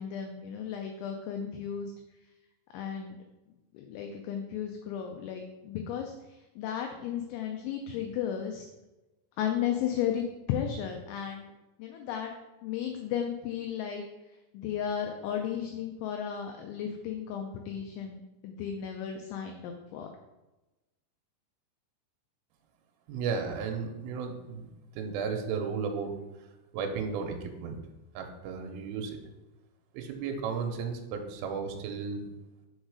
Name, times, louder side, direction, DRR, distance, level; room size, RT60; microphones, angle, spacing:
voice 1, 0.0-1.9 2.7-3.2 3.7-6.1 6.6-8.7 9.4-11.5 11.8-12.3 12.6-14.0 14.5-20.1, left 9 dB, 90° left, 3 dB, 2.6 m, -34 dB
voice 2, 23.1-24.7 25.0-26.1 26.7-27.8 28.1-29.2 29.9-32.2, right 5 dB, 80° right, 4 dB, 3.2 m, -34 dB
7.1 x 4.0 x 4.8 m, 1.1 s
omnidirectional pair, 6.0 m